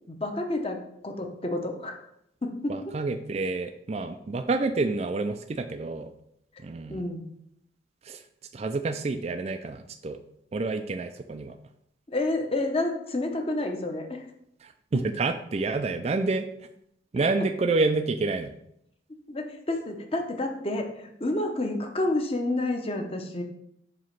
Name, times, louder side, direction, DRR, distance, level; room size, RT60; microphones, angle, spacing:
voice 1, 0.1-2.0 2.4-2.8 6.9-7.3 12.1-14.2 19.3-23.4, left 2 dB, 30° left, 4 dB, 0.9 m, -29 dB
voice 2, 2.7-6.1 6.6-7.0 8.0-8.2 8.5-10.2 10.5-11.6 14.6-16.5 17.1-18.5, right 3 dB, 35° right, 7 dB, 0.3 m, -28 dB
7.4 x 3.0 x 5.8 m, 0.74 s
head